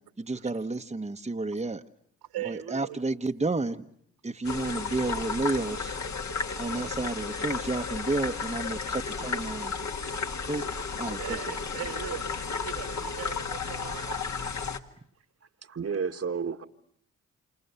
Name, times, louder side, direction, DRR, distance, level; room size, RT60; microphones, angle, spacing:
voice 1, 0.0-1.8 2.4-3.8 4.2-6.0 6.6-9.7 10.4-10.6 11.0-11.2, right 3 dB, 15° right, 1.2 m, -31 dB
voice 2, 2.2-3.0 8.0-8.3 8.7-8.8 10.9-14.2, right 12 dB, 80° right, 2.8 m, -40 dB
sound 1, 4.4-14.8, left 5 dB, 45° left, 1.9 m, -33 dB
voice 3, 15.6-16.7, right 6 dB, 40° right, 1.6 m, -31 dB
28.5 x 27.5 x 6.9 m
hypercardioid pair, 40°, 38 cm